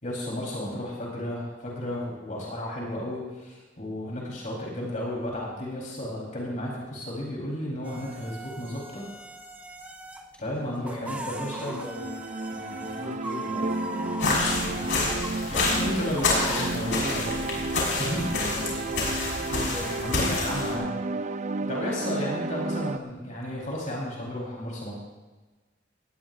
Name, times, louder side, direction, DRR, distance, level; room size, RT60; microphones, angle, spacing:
voice 1, 0.0-9.0 10.4-11.7 15.5-17.3 18.0-18.2 19.5-19.8 20.0-20.9 21.6-25.0, left 1 dB, 45° left, -3 dB, 4.4 m, -33 dB
sound 1, 7.8-10.3 10.7-15.4 16.1-16.7, right 1 dB, 10° right, 1.0 m, -40 dB
voice 2, 10.8-12.1 12.5-14.9 17.9-18.9 19.7-20.0, left 1 dB, 5° left, -4 dB, 5.8 m, -40 dB
sound 2, 11.4-23.0, right 2 dB, 40° right, 0.6 m, -32 dB
sound 3, 14.2-20.7, left 3 dB, 75° left, 5.9 m, -28 dB
20.0 x 18.5 x 2.7 m, 1.2 s
head